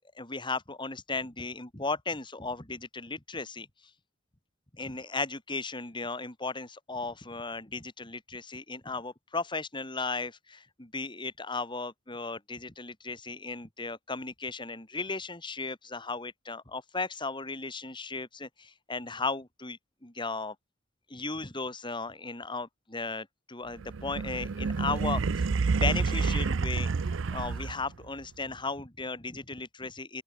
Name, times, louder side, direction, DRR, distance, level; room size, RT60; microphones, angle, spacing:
voice 1, 0.1-3.7 4.8-20.5 21.1-25.5 25.8-26.9 27.3-30.2, left 3 dB, 25° left, 2.8 m, -36 dB
sound 1, 23.8-28.0, right 4 dB, 70° right, 0.5 m, -29 dB
open air
head